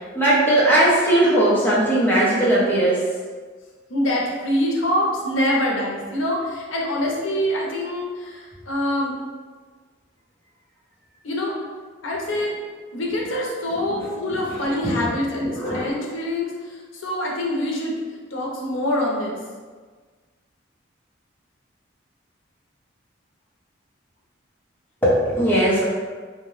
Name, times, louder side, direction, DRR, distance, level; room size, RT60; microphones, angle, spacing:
voice 1, 0.1-3.0 14.8-15.1 15.4-15.8 25.0-25.9, right 1 dB, 10° left, -8 dB, 0.6 m, -18 dB
voice 2, 3.9-9.2 11.2-11.5 12.0-12.6 12.9-18.0 18.3-19.4, left 1 dB, 85° left, -2 dB, 0.6 m, -25 dB
2.7 x 2.1 x 3.0 m, 1.5 s
head